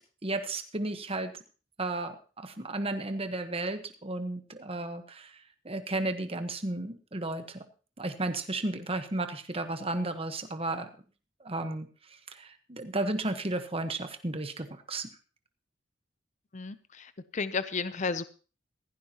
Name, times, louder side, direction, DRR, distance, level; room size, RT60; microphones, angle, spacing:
voice 1, 0.2-1.3 1.8-5.4 5.6-7.6 8.0-10.9 11.4-11.9 12.3-15.1, right 2 dB, 30° right, 8 dB, 1.2 m, -33 dB
voice 2, 16.5-18.2, left 4 dB, 40° left, 13 dB, 0.6 m, -33 dB
16.0 x 15.5 x 2.9 m, 0.36 s
head